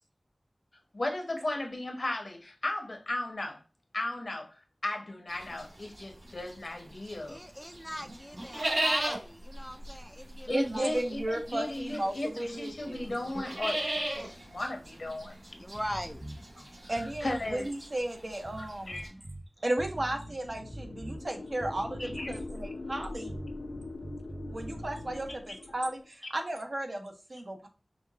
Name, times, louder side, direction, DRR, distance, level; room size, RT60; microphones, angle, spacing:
voice 1, 0.9-3.6 3.9-4.5 4.8-7.4 7.9-8.0 10.5-15.4 16.6-16.7 17.0-17.7 18.6-19.1 22.0-22.3, left 1 dB, 65° left, 1.1 m, -36 dB
sound 1, 5.3-7.3 7.6-19.1, right 1 dB, 80° right, 2.1 m, -36 dB
voice 2, 7.3-11.0 15.5-16.2, equal, 5° left, 0.5 m, -40 dB
voice 3, 10.5-13.1 16.9-19.2 19.6-23.3 24.5-27.7, right 1 dB, 60° right, 1.0 m, -34 dB
sound 2, 15.7-16.4 16.9-17.7 18.5-19.5 19.8-21.2 21.6-22.6 23.3-25.3, right 1 dB, 25° right, 0.7 m, -44 dB
sound 3, 20.1-26.1, left 2 dB, 80° left, 0.4 m, -43 dB
5.3 x 2.3 x 3.6 m
wide cardioid pair, 65°, 0 cm